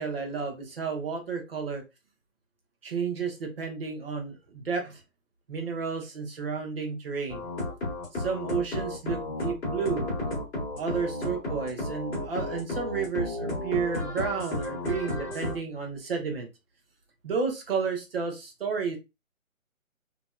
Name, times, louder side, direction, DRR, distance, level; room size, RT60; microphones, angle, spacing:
voice 1, 0.0-1.8 2.8-5.0 5.5-7.5 8.1-10.1 10.8-16.5 17.2-19.0, right 5 dB, 45° right, 2 dB, 1.1 m, -31 dB
sound 1, 7.3-15.5, left 2 dB, 10° left, 1.2 m, -32 dB
3.4 x 2.9 x 2.3 m, 0.25 s
hypercardioid pair, 165°, 41 cm